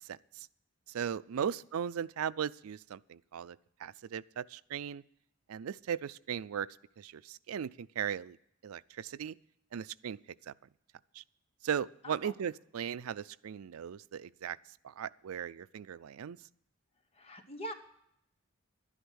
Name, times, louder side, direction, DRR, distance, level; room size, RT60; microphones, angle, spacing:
voice 1, 0.0-0.5 0.9-5.0 5.5-8.4 8.6-9.4 9.7-10.5 11.1-11.2 11.6-16.4, right 8 dB, 85° right, 17 dB, 0.4 m, -38 dB
voice 2, 17.1-17.7, equal, 30° left, 7 dB, 0.9 m, -43 dB
11.5 x 10.0 x 6.3 m, 0.74 s
head